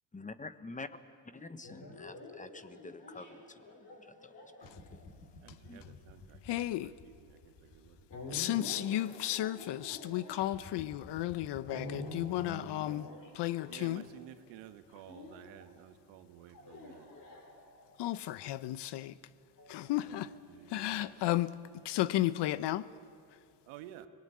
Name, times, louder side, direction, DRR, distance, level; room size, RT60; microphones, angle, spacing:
voice 1, 0.1-0.9 1.3-5.0 5.7-5.8, left 3 dB, 15° left, 1.3 m, -48 dB
sound 1, 1.6-14.3 15.1-15.7 16.5-18.0 19.6-21.0, left 1 dB, 45° left, 6.7 m, -48 dB
voice 2, 5.4-8.0 13.7-17.1 20.5-21.1 23.7-24.1, right 12 dB, 90° right, 1.5 m, -53 dB
voice 3, 6.5-6.9 8.3-13.1 13.3-14.1 18.0-19.2 19.7-20.3 20.7-21.5 21.8-22.8, left 14 dB, 65° left, 1.0 m, -33 dB
24.5 x 20.0 x 9.5 m
supercardioid pair, 90°, 45 cm